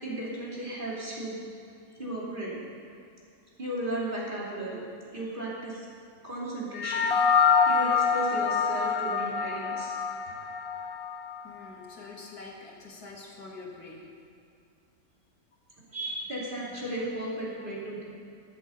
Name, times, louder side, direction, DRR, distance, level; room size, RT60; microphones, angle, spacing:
voice 1, 0.0-1.4 1.9-2.6 3.6-4.8 5.1-5.9 6.2-7.1 7.7-10.0 15.9-18.0, right 1 dB, 30° right, -5 dB, 2.9 m, -35 dB
sound 1, 6.7-11.4, left 6 dB, 55° left, 0.7 m, -26 dB
voice 2, 11.4-14.1, left 3 dB, 75° left, -1 dB, 2.3 m, -45 dB
13.5 x 8.3 x 6.9 m, 2.5 s
omnidirectional pair, 1.6 m